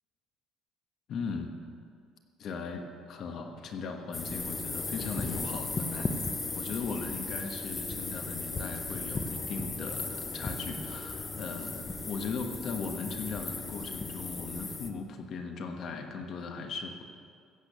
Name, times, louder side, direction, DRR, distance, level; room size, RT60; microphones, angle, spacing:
voice 1, 1.1-1.6 2.4-6.2 6.5-17.0, left 4 dB, 45° left, 4 dB, 1.3 m, -38 dB
sound 1, 4.1-14.9, left 3 dB, 20° left, 0.8 m, -36 dB
15.0 x 8.2 x 6.8 m, 2.2 s
cardioid pair, 165°, 0 cm